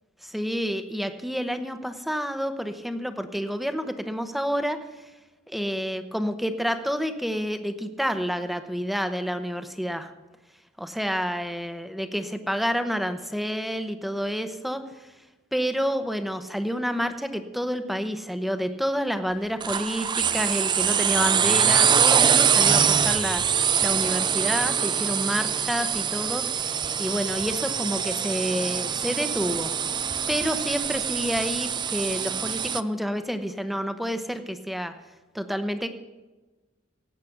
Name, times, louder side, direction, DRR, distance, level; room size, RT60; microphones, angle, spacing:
voice 1, 0.2-4.8 5.5-10.1 10.8-14.8 15.5-29.7 30.3-34.9 35.3-35.9, equal, ahead, 8 dB, 0.9 m, -29 dB
sound 1, 19.6-32.8, right 7 dB, 20° right, 0.3 m, -24 dB
17.5 x 8.4 x 6.0 m, 1.2 s
head